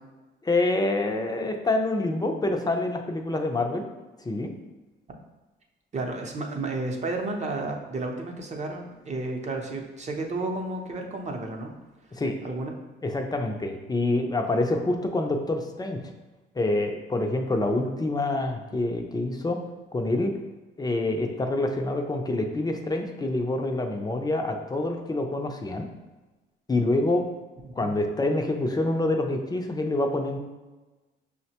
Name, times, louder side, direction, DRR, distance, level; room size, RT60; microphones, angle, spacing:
voice 1, 0.4-3.9 4.2-4.5 12.1-12.3 13.0-16.0 16.5-19.6 19.9-20.3 20.8-25.9 26.7-27.2 27.8-30.4, left 2 dB, 20° left, 3 dB, 0.4 m, -26 dB
voice 2, 5.9-11.7 12.4-12.7 27.6-27.9, right 2 dB, 35° right, 2 dB, 0.7 m, -32 dB
5.6 x 2.1 x 2.8 m, 1.2 s
cardioid pair, 90°, 20 cm